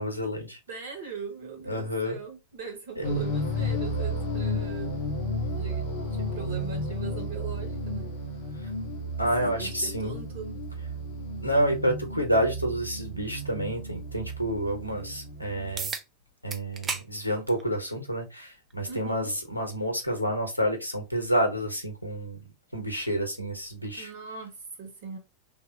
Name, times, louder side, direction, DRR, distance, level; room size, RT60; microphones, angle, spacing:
voice 1, 0.0-0.6 1.7-2.2 3.0-3.1 9.2-10.2 11.4-15.9 16.4-22.4 22.7-24.1, equal, 90° right, 0.9 m, -29 dB
voice 2, 0.7-5.1 5.5-8.1 9.2-10.6 18.9-19.3 24.0-25.2, right 6 dB, 55° right, 0.9 m, -40 dB
sound 1, 3.0-15.8, equal, 50° left, 0.9 m, -33 dB
sound 2, 15.8-16.1 16.5-17.1 17.5-17.6 18.7-18.8 23.7-23.8, right 5 dB, 20° right, 0.5 m, -33 dB
2.9 x 2.4 x 3.6 m
figure-of-eight pair, 90°, 0 cm